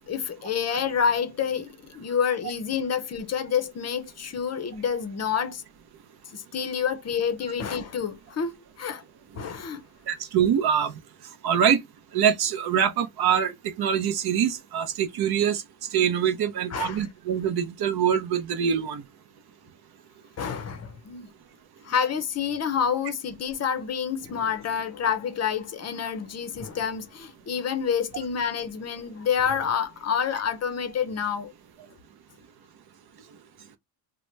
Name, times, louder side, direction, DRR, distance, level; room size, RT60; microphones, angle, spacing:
voice 1, 0.0-5.6 6.3-9.0 9.4-9.8 16.7-17.0 20.4-21.3 21.8-31.5, left 7 dB, 35° left, 0.6 m, -28 dB
voice 2, 10.1-10.9 11.4-11.8 12.1-15.6 15.9-19.0, right 8 dB, 50° right, 0.6 m, -24 dB
2.9 x 2.1 x 3.2 m
cardioid pair, 100°, 48 cm